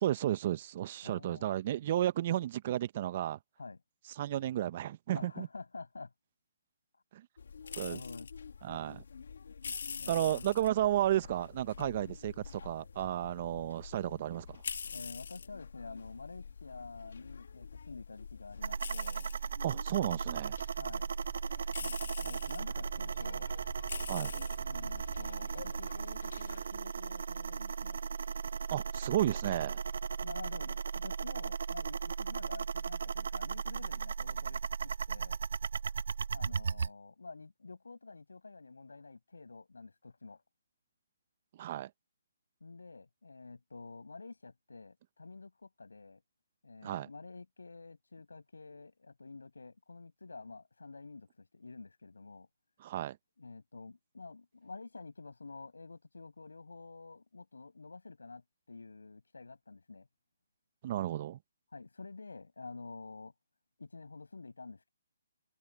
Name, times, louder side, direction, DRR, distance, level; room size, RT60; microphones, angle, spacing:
voice 1, 0.0-3.4 4.2-5.5 7.1-7.2 7.7-8.0 8.6-9.0 10.1-14.6 19.6-20.6 24.1-24.3 28.7-29.8 41.6-41.9 46.8-47.1 52.8-53.2 60.8-61.4, right 12 dB, 40° right, 1.1 m, -33 dB
voice 2, 1.0-1.5 3.6-3.8 5.1-6.1 7.8-8.3 10.0-10.5 11.8-11.9 14.9-19.3 20.7-21.1 21.8-23.5 24.7-28.0 30.2-35.4 36.3-40.4 42.6-46.2 46.6-52.5 53.4-58.4 58.7-60.1 61.7-63.3 63.8-64.9, left 3 dB, 85° left, 6.7 m, -49 dB
sound 1, 7.4-26.7, left 6 dB, 70° left, 2.5 m, -46 dB
sound 2, 18.6-36.9, right 6 dB, 65° right, 0.8 m, -37 dB
open air
hypercardioid pair, 145°, 0 cm